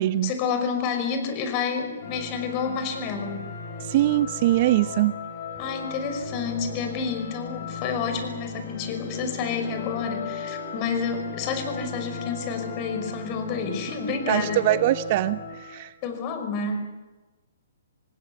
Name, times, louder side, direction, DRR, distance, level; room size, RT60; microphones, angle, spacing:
voice 1, 0.2-3.4 5.6-14.8 16.0-16.9, left 5 dB, 35° left, 7 dB, 5.7 m, -29 dB
sound 1, 2.0-15.9, left 4 dB, 55° left, 7.1 m, -37 dB
voice 2, 3.8-5.1 14.3-15.9, right 14 dB, 45° right, 14 dB, 0.8 m, -22 dB
27.0 x 19.0 x 9.6 m, 1.2 s
hypercardioid pair, 135°, 0 cm